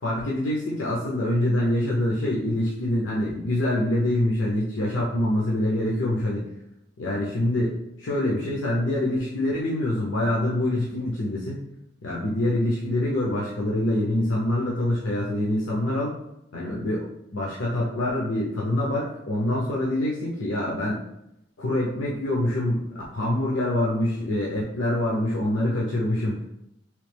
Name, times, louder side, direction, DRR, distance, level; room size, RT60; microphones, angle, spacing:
voice 1, 0.0-6.4 7.0-11.6 12.0-16.1 16.5-17.1 17.3-21.0 21.6-26.4, left 1 dB, 80° left, -4 dB, 0.6 m, -25 dB
3.1 x 3.1 x 3.3 m, 0.80 s
head